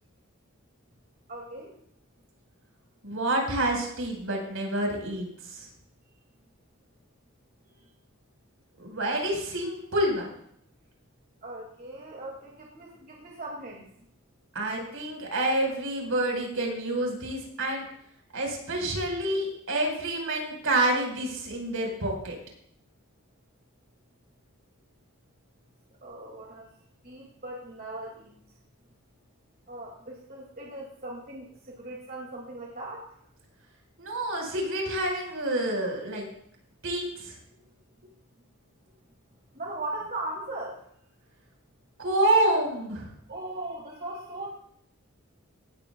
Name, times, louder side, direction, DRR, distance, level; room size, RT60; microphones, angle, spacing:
voice 1, 1.3-1.7 7.7-7.9 11.4-13.8 26.0-26.7 27.0-28.3 29.7-33.0 39.5-40.8 43.3-44.5, right 2 dB, 45° right, -2 dB, 2.2 m, -39 dB
voice 2, 3.0-5.7 8.8-10.3 14.5-17.9 18.3-22.4 34.0-36.3 36.8-37.3 42.0-43.1, right 1 dB, 75° right, 0 dB, 4.6 m, -28 dB
18.0 x 14.0 x 2.3 m, 0.68 s
head